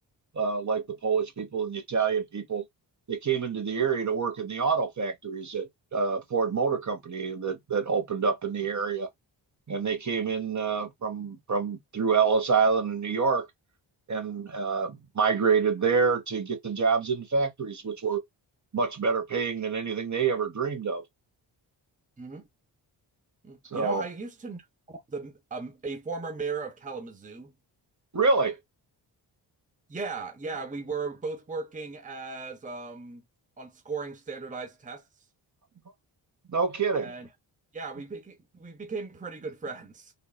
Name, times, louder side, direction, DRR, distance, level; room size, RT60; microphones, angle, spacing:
voice 1, 0.3-2.6 3.1-9.1 9.7-13.5 14.1-18.2 18.7-21.0 23.7-24.0 28.1-28.6 36.5-37.1, right 5 dB, 35° right, 1.1 m, -27 dB
voice 2, 23.4-27.5 29.9-33.2 33.6-35.0 37.0-37.3 37.7-40.1, right 4 dB, 15° right, 0.8 m, -37 dB
3.6 x 2.3 x 2.2 m
cardioid pair, 55°, 48 cm